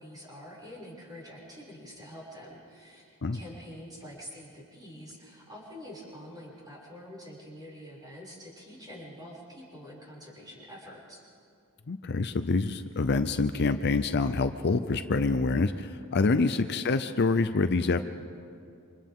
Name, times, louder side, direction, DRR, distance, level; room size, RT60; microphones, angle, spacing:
voice 1, 0.0-3.1 3.3-11.2 16.3-16.5, equal, 20° right, -5 dB, 6.4 m, -46 dB
voice 2, 11.9-18.0, left 3 dB, 50° left, 9 dB, 0.6 m, -26 dB
29.0 x 26.0 x 3.7 m, 2.5 s
head